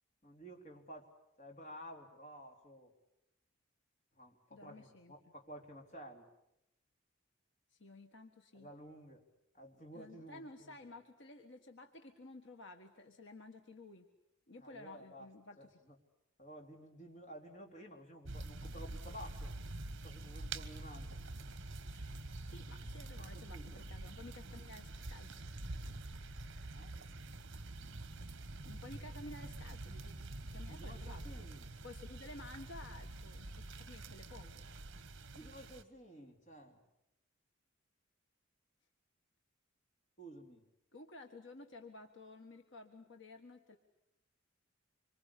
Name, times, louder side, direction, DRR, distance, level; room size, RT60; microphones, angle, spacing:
voice 1, 0.2-1.1 1.4-2.9 4.1-6.3 8.5-9.2 9.5-10.7 14.6-15.3 15.6-16.0 16.4-19.5 20.0-21.2 23.2-23.8 26.7-27.0 30.7-31.7 35.3-36.8 40.2-40.6, equal, 35° left, 2 dB, 3.6 m, -53 dB
voice 2, 4.5-5.1 7.7-8.7 9.9-14.1 14.5-15.6 21.8-25.4 28.6-30.1 30.5-31.2 31.8-34.7 40.9-43.8, left 2 dB, 65° left, 5 dB, 1.6 m, -53 dB
sound 1, 18.2-35.8, right 2 dB, 60° right, 1.5 m, -46 dB
26.5 x 24.5 x 8.5 m, 0.84 s
head